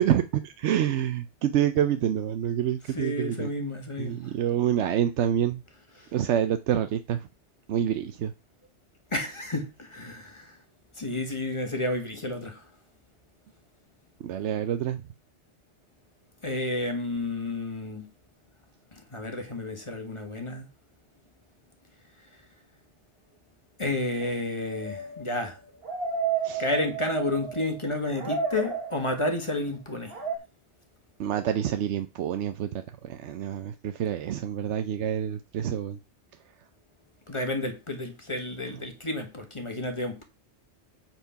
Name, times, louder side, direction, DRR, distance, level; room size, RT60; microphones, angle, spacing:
voice 1, 0.0-3.5 4.0-5.6 6.1-7.2 7.7-8.3 14.2-15.0 26.4-26.6 31.2-36.0, right 10 dB, 75° right, 0.9 m, -27 dB
voice 2, 2.9-4.3 6.0-6.1 9.1-10.6 10.9-12.7 16.4-18.1 18.9-20.7 23.8-25.6 26.6-30.2 37.3-40.2, left 2 dB, 25° left, 1.5 m, -31 dB
sound 1, 24.2-27.8 28.1-29.4 30.1-30.4, right 5 dB, 55° right, 1.6 m, -32 dB
8.2 x 4.5 x 5.7 m
omnidirectional pair, 1.2 m